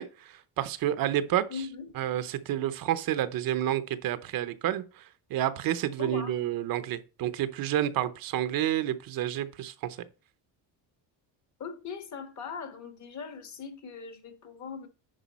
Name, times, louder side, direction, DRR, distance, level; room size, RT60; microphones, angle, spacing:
voice 1, 0.0-1.6 2.0-10.0, right 11 dB, 55° right, 0.7 m, -30 dB
voice 2, 1.5-1.9 6.0-6.3 11.6-14.9, left 5 dB, 40° left, 1.5 m, -40 dB
10.0 x 4.8 x 4.1 m
cardioid pair, 150°, 43 cm